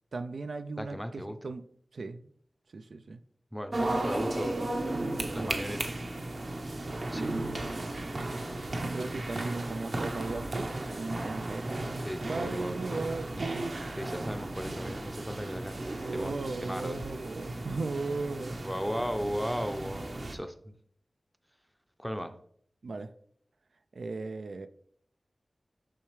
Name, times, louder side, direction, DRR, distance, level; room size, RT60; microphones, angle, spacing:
voice 1, 0.1-1.7 1.9-2.3 2.7-3.2 5.3-5.6 8.8-11.8 12.3-13.8 14.1-14.8 16.0-18.6 22.8-23.1 23.9-24.7, right 3 dB, 80° right, 0.3 m, -37 dB
voice 2, 0.8-1.4 3.5-4.6 5.3-5.8 7.1-7.3 12.0-13.0 14.0-15.8 16.1-17.0 18.6-20.7 22.0-22.3, equal, ahead, 0.5 m, -36 dB
sound 1, 3.7-20.4, right 2 dB, 55° right, 0.7 m, -35 dB
8.7 x 3.4 x 3.2 m
wide cardioid pair, 65°, 0 cm